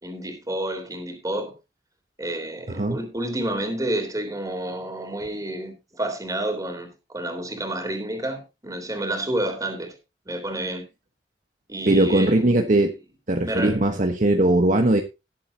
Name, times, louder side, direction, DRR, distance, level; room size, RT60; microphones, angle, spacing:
voice 1, 0.0-1.5 2.2-10.0 10.2-10.8 11.7-12.6 13.4-13.8, right 1 dB, 20° right, 3.3 m, -29 dB
voice 2, 11.9-12.9 13.3-15.0, right 1 dB, 45° right, 1.2 m, -19 dB
19.0 x 7.7 x 2.8 m
head